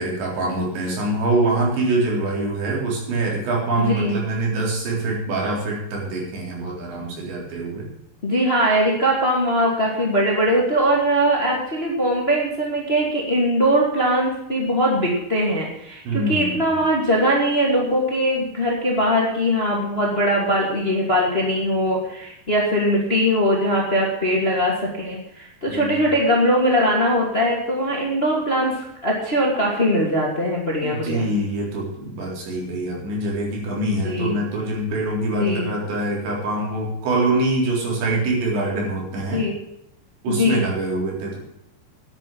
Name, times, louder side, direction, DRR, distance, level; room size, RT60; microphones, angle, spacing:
voice 1, 0.0-7.9 16.1-16.7 25.7-26.1 30.8-39.5 40.2-41.4, right 2 dB, 75° right, -2 dB, 6.2 m, -24 dB
voice 2, 3.8-4.2 8.2-31.3 34.0-34.4 35.4-35.7 39.3-39.5 40.3-40.6, equal, 20° left, -2 dB, 1.7 m, -21 dB
10.5 x 9.0 x 8.7 m, 0.79 s
omnidirectional pair, 5.1 m